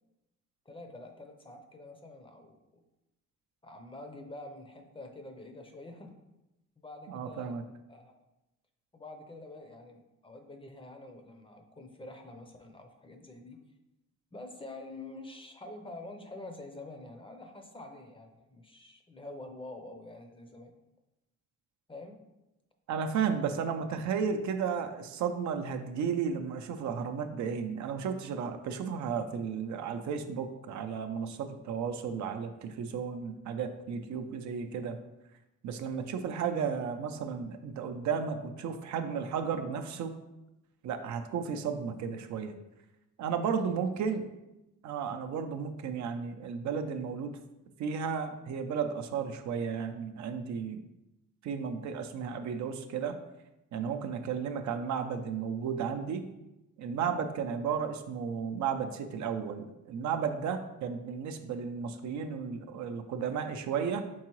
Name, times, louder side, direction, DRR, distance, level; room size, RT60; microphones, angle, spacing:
voice 1, 0.7-2.8 3.6-6.1 6.8-7.6 7.9-8.3 8.9-13.6 14.3-20.7 21.9-22.3 43.6-43.8, left 2 dB, 15° left, 4 dB, 0.6 m, -47 dB
voice 2, 7.1-7.6 22.9-35.0 35.6-40.1 40.8-42.5 43.2-44.2 44.8-47.3 47.8-50.8 51.4-53.2 53.7-56.2 56.8-64.1, right 6 dB, 70° right, 6 dB, 0.5 m, -33 dB
4.6 x 3.7 x 3.0 m, 0.94 s
cardioid pair, 90°, 30 cm